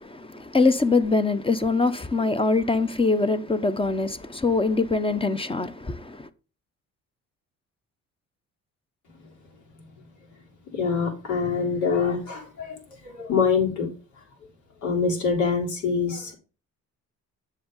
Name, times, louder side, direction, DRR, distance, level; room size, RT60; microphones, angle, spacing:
voice 1, 0.0-6.3, left 3 dB, 20° left, 0.8 m, -23 dB
voice 2, 10.7-13.9 14.8-16.3, left 5 dB, 80° left, 3.4 m, -25 dB
7.7 x 6.5 x 3.8 m
cardioid pair, 90°, 30 cm